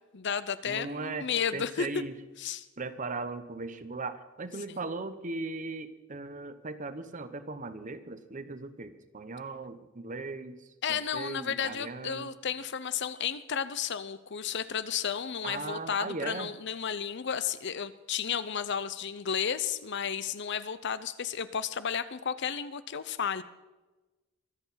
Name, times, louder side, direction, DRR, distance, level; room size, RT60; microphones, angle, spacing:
voice 1, 0.1-2.0 2.4-2.7 4.7-4.8 10.8-23.4, left 7 dB, 55° left, 14 dB, 0.7 m, -33 dB
voice 2, 0.6-1.3 1.5-2.1 2.8-10.6 10.9-12.3 15.4-16.5, right 3 dB, 40° right, 11 dB, 0.9 m, -38 dB
23.5 x 8.0 x 5.7 m, 1.1 s
head